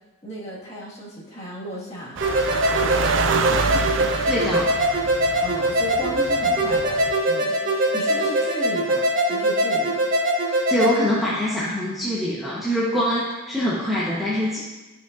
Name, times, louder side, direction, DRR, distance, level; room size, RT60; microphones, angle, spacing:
voice 1, 0.2-2.2 2.8-3.2 5.4-7.0 7.3-10.0, equal, 30° left, -7 dB, 1.8 m, -34 dB
sound 1, 2.2-10.9, right 1 dB, 40° right, 1.3 m, -22 dB
sound 2, 2.2-7.2, right 5 dB, 65° right, 0.4 m, -27 dB
voice 2, 4.3-4.7 10.5-14.6, equal, ahead, -8 dB, 1.0 m, -24 dB
11.5 x 5.6 x 2.5 m, 1.1 s
head